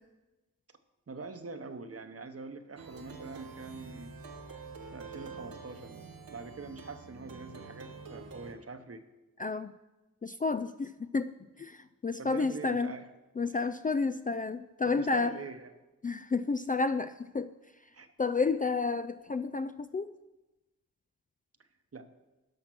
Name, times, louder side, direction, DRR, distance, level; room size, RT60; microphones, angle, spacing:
voice 1, 1.1-4.1 4.9-6.0 6.3-9.0 12.2-13.1 13.5-13.7 14.8-15.7 17.9-18.1 21.9-22.1, right 3 dB, 45° right, 9 dB, 1.1 m, -44 dB
Plucked string instrument, 2.8-8.5, right 4 dB, 80° right, 1.1 m, -47 dB
voice 2, 9.4-9.7 10.2-11.3 11.6-12.9 13.4-15.3 16.0-17.5 18.2-20.2, left 4 dB, 25° left, 11 dB, 0.4 m, -31 dB
11.5 x 5.8 x 6.2 m, 1.1 s
cardioid pair, 45°, 34 cm